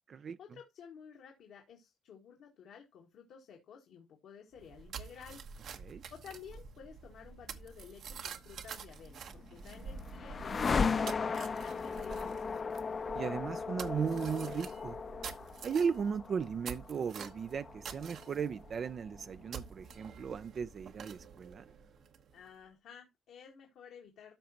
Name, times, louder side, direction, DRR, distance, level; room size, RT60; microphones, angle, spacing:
voice 1, 0.1-5.4 6.1-12.8 22.3-24.3, left 7 dB, 80° left, 1.7 m, -53 dB
sound 1, 4.5-22.5, right 6 dB, 70° right, 1.1 m, -48 dB
sound 2, 9.1-19.2, left 5 dB, 40° left, 0.5 m, -37 dB
voice 2, 13.1-15.0 15.6-21.6, right 6 dB, 50° right, 0.4 m, -36 dB
13.0 x 5.2 x 2.9 m
cardioid pair, 90°, 0 cm